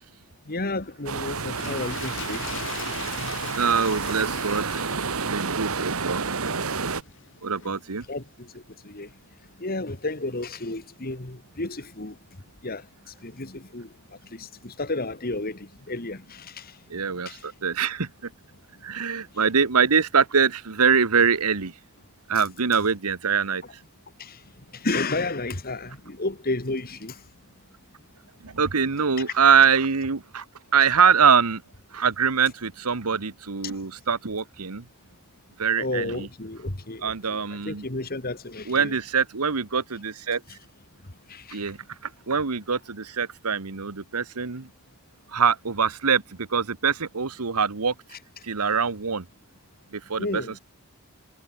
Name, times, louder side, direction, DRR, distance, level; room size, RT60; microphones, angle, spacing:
voice 1, 0.5-3.2 7.6-7.7 8.1-9.1 9.6-12.2 12.6-13.9 14.2-16.8 17.3-17.5 24.2-27.3 35.8-38.9 41.3-41.7 50.2-50.6, left 2 dB, 40° left, 2.2 m, -32 dB
sound 1, 1.1-7.0, right 5 dB, 70° right, 1.6 m, -30 dB
Toilet flush, 1.4-6.9 7.6-7.7, left 6 dB, 60° left, 7.4 m, -39 dB
voice 2, 3.5-4.9 5.3-6.2 7.4-8.0 16.9-18.3 18.8-21.7 22.3-23.6 28.4-30.4 30.7-31.6 31.9-34.8 35.6-36.3 37.0-37.8 38.6-40.4 41.5-44.7 45.3-47.9 48.4-49.3 49.9-50.4, right 6 dB, 85° right, 1.2 m, -23 dB
head